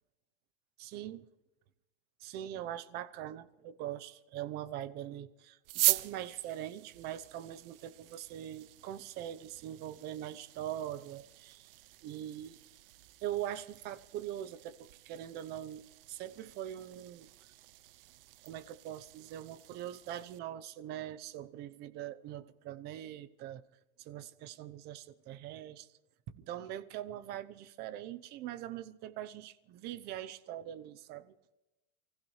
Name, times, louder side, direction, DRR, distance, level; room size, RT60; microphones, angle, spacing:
voice 1, 0.8-1.2 2.2-11.7 12.0-12.6 13.2-17.3 18.4-23.6 24.0-25.9 26.3-31.4, right 11 dB, 35° right, 0.9 m, -42 dB
sound 1, 5.6-20.4, right 16 dB, 70° right, 0.7 m, -41 dB
29.0 x 15.5 x 3.3 m
supercardioid pair, 160°, 29 cm